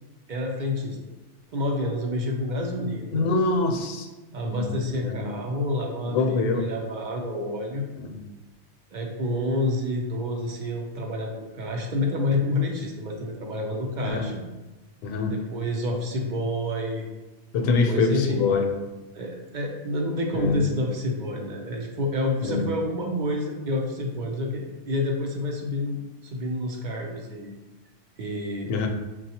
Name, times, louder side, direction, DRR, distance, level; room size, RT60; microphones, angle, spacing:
voice 1, 0.3-1.0 1.5-3.2 4.3-7.9 8.9-14.4 15.3-17.1 17.6-18.5 19.1-27.5 28.2-28.7, left 1 dB, 60° right, 1 dB, 0.5 m, -28 dB
voice 2, 3.1-4.1 4.4-4.6 5.0-5.2 6.1-6.6 8.0-8.2 14.0-14.2 15.0-15.4 17.5-18.7 20.3-20.6 22.4-22.7 28.7-28.9, left 4 dB, 85° left, 4 dB, 1.0 m, -24 dB
6.0 x 2.2 x 2.8 m, 1.1 s
omnidirectional pair, 1.3 m